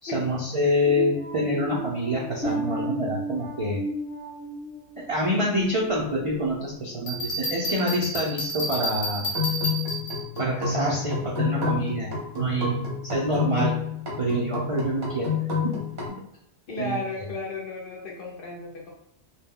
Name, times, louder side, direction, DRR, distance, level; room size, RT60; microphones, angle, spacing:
voice 1, 0.0-3.8 5.0-9.3 10.4-13.7 14.2-15.8 16.8-17.0, equal, 55° right, -4 dB, 0.3 m, -26 dB
sound 1, 0.9-6.5 6.9-7.2 7.7-7.9, right 1 dB, 5° left, 1.2 m, -35 dB
Bell, 7.1-10.4, equal, 35° left, 1.0 m, -30 dB
sound 2, 9.2-16.1, left 5 dB, 40° right, 0.8 m, -29 dB
voice 2, 16.7-18.9, left 2 dB, 60° left, -1 dB, 0.7 m, -34 dB
2.2 x 2.1 x 3.5 m, 0.71 s
omnidirectional pair, 1.2 m